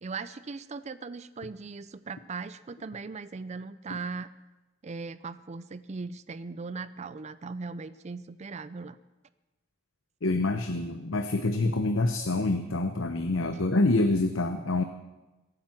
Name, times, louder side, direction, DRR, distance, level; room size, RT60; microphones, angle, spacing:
voice 1, 0.0-4.3 4.8-9.0, right 4 dB, 35° right, 15 dB, 0.4 m, -39 dB
voice 2, 10.2-14.8, left 2 dB, 75° left, 7 dB, 0.8 m, -26 dB
22.5 x 8.9 x 5.9 m, 1.1 s
head